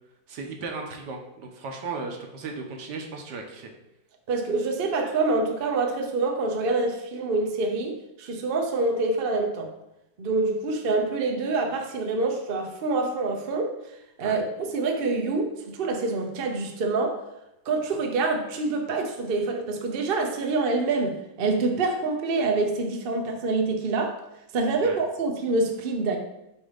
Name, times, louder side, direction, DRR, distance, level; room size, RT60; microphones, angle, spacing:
voice 1, 0.3-3.7 14.2-14.4 24.8-25.0, right 4 dB, 70° right, 1.5 m, -36 dB
voice 2, 4.3-9.7 10.2-13.8 14.2-17.2 17.7-24.2 24.5-26.2, right 3 dB, 55° right, 0.6 m, -26 dB
7.5 x 2.8 x 5.0 m
omnidirectional pair, 2.0 m